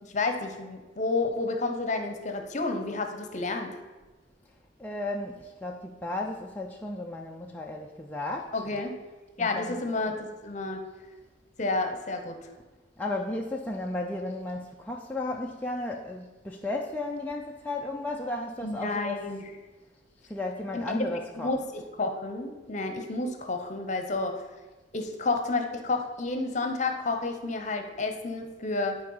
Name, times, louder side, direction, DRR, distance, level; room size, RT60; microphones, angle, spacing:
voice 1, 0.0-3.8 8.5-8.9 9.4-10.9 11.6-12.4 18.6-19.4 20.7-21.0 21.3-24.4 24.9-29.0, left 3 dB, 40° left, 5 dB, 0.9 m, -30 dB
voice 2, 4.8-8.6 9.4-9.8 13.0-19.3 20.3-21.8, left 2 dB, 10° left, -1 dB, 0.4 m, -34 dB
10.5 x 4.5 x 5.5 m, 1.2 s
head